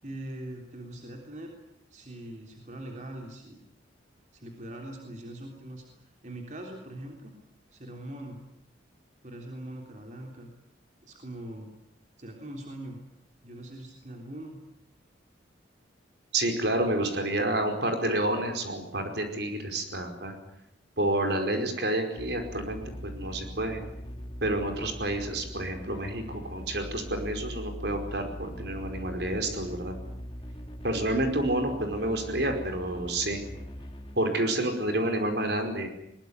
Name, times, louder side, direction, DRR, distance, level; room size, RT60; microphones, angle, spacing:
voice 1, 0.0-1.5 1.9-3.6 4.3-7.3 7.7-8.4 9.2-10.5 11.0-11.7 12.2-13.0 13.4-14.6, right 1 dB, 40° right, 1 dB, 3.5 m, -42 dB
voice 2, 16.3-20.3 21.0-23.8 24.4-29.9 30.8-33.4 34.2-35.9, right 1 dB, 60° right, 5 dB, 5.0 m, -29 dB
sound 1, 22.2-34.2, equal, 30° left, 2.1 m, -41 dB
21.5 x 21.5 x 9.7 m, 0.81 s
head